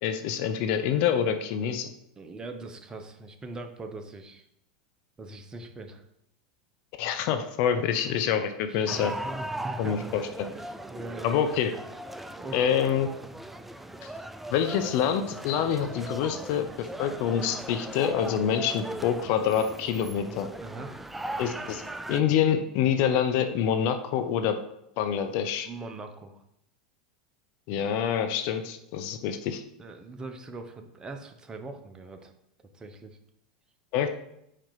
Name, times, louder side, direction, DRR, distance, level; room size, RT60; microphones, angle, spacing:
voice 1, 0.0-1.9 7.0-9.1 9.8-10.5 11.2-11.7 12.5-13.1 14.0-14.1 14.5-20.5 21.4-21.8 22.1-24.6 25.0-25.7 27.7-29.6 33.9-34.2, left 8 dB, 55° left, 8 dB, 0.7 m, -26 dB
voice 2, 2.2-4.5 5.2-6.0 8.7-8.9 9.2-10.0 10.4-11.4 12.3-12.6 20.6-20.9 25.6-26.4 29.8-32.3 32.7-33.2, right 2 dB, 20° right, 6 dB, 1.0 m, -41 dB
sound 1, 8.9-22.2, right 1 dB, 5° right, 0.4 m, -39 dB
5.0 x 4.4 x 5.7 m, 0.79 s
hypercardioid pair, 95°, 4 cm